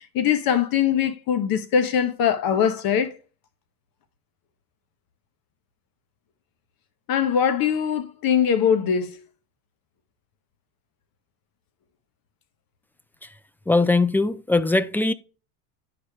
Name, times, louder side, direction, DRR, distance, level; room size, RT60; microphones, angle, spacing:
voice 1, 0.1-3.1 7.1-9.2, left 8 dB, 50° left, 1.4 m, -22 dB
voice 2, 13.7-15.1, left 3 dB, 5° left, 0.3 m, -21 dB
10.0 x 5.1 x 3.5 m
hypercardioid pair, 90°, 44 cm